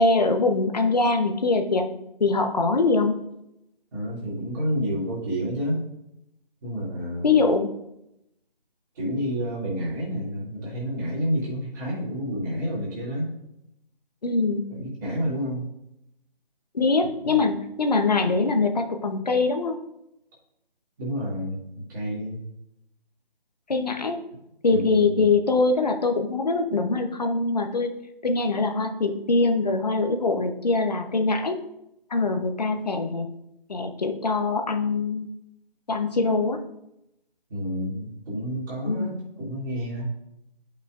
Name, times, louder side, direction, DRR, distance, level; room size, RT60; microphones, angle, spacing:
voice 1, 0.0-1.9 2.2-3.2 7.2-7.7 14.2-14.6 16.7-19.8 23.7-24.2 24.6-27.9 28.2-31.6 32.1-33.3 33.7-35.3 35.9-36.6 38.8-39.1, left 3 dB, 45° left, 6 dB, 0.8 m, -23 dB
voice 2, 3.9-5.9 6.6-7.4 8.9-13.3 14.7-15.7 17.2-17.4 21.0-22.4 24.7-25.2 37.5-40.1, equal, 20° right, -7 dB, 2.4 m, -29 dB
11.0 x 5.6 x 2.5 m, 0.84 s
figure-of-eight pair, 155°, 29 cm